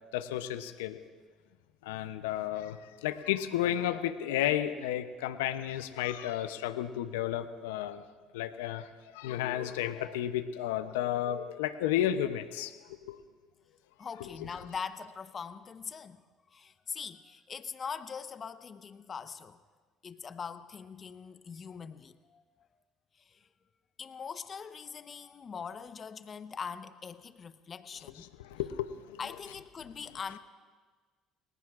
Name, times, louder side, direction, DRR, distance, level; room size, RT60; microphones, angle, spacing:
voice 1, 0.1-1.0 1.8-8.0 8.3-12.7 13.0-13.2 14.2-14.7 28.1-29.5 30.1-30.4, left 11 dB, 85° left, 10 dB, 0.7 m, -33 dB
voice 2, 14.0-16.2 16.5-19.6 20.0-22.4 23.3-23.5 24.0-28.3 29.2-30.4, left 6 dB, 40° left, 11 dB, 1.0 m, -42 dB
30.0 x 19.5 x 2.5 m, 1.5 s
hypercardioid pair, 65°, 0 cm